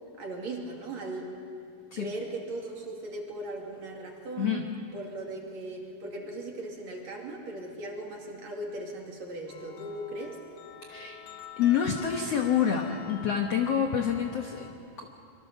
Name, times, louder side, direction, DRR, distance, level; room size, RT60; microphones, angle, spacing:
voice 1, 0.2-1.3 2.0-4.7 4.9-10.4, right 2 dB, 50° right, 0 dB, 3.5 m, -38 dB
voice 2, 4.4-4.7 10.9-11.2 11.6-15.1, left 8 dB, 65° left, 3 dB, 1.6 m, -27 dB
sound 1, 9.5-14.7, left 8 dB, 85° left, 3.8 m, -46 dB
26.0 x 23.5 x 6.9 m, 2.6 s
omnidirectional pair, 4.4 m